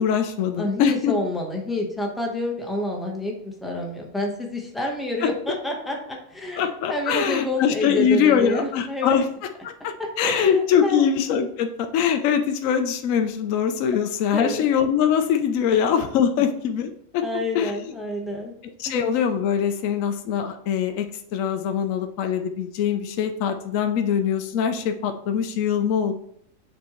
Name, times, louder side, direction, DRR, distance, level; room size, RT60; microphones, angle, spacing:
voice 1, 0.0-1.1 5.2-5.3 6.6-17.2 17.5-17.9 18.8-26.1, left 8 dB, 75° left, 6 dB, 0.9 m, -23 dB
voice 2, 0.6-9.2 10.0-11.1 14.3-14.6 17.2-18.5 18.9-19.0, left 1 dB, ahead, -1 dB, 0.8 m, -28 dB
7.4 x 4.2 x 3.0 m, 0.69 s
omnidirectional pair, 1.5 m